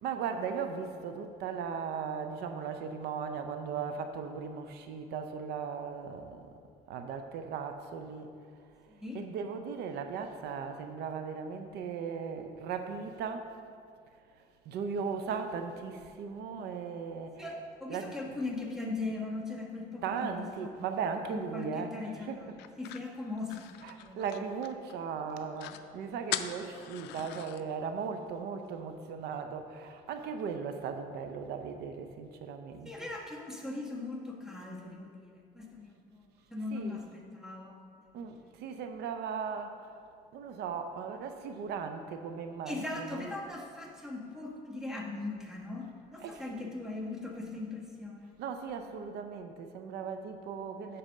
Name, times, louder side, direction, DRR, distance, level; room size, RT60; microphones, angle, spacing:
voice 1, 0.0-6.4 6.9-8.3 9.1-13.5 14.7-17.5 17.9-18.4 20.0-22.6 23.8-32.9 36.7-37.1 38.1-40.0 40.3-43.3 46.2-46.7 48.4-51.0, right 6 dB, 75° right, 7 dB, 0.5 m, -37 dB
voice 2, 8.9-9.2 17.4-20.7 21.3-24.2 32.8-36.2 36.5-38.5 42.6-48.4, left 3 dB, 5° right, -1 dB, 1.2 m, -40 dB
sound 1, 22.6-25.0 25.3-25.4 25.6-25.8 26.3-27.6, left 12 dB, 80° left, 0.4 m, -40 dB
7.3 x 4.2 x 6.4 m, 2.3 s
cardioid pair, 110°, 17 cm